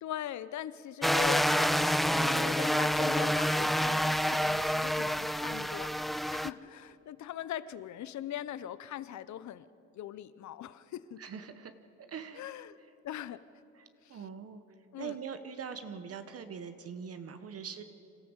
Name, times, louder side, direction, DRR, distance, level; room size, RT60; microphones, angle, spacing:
voice 1, 0.0-6.0 6.3-9.7 9.9-11.2 12.3-12.8 13.0-13.4 14.0-14.2 14.9-15.2, left 11 dB, 70° left, 16 dB, 0.8 m, -41 dB
sound 1, 1.0-6.5, equal, ahead, 0.4 m, -28 dB
voice 2, 11.2-11.7 12.1-12.4 13.7-14.6 15.0-17.8, right 7 dB, 50° right, 10 dB, 1.2 m, -42 dB
26.5 x 13.5 x 8.1 m, 2.7 s
cardioid pair, 90°, 30 cm